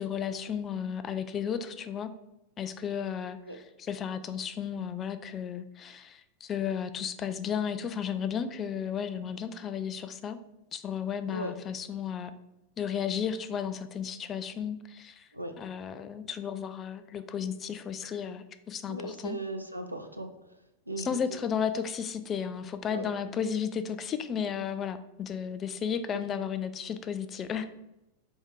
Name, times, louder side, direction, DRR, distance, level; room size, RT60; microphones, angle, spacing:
voice 1, 0.0-2.1 2.6-10.4 10.7-12.3 12.8-15.3 15.6-19.4 21.0-27.7, left 7 dB, 25° left, 10 dB, 0.3 m, -34 dB
voice 2, 18.9-20.3 20.9-21.4 22.9-23.1, right 1 dB, 85° right, 6 dB, 0.4 m, -37 dB
3.4 x 2.6 x 4.6 m, 0.90 s
figure-of-eight pair, 90°, 0 cm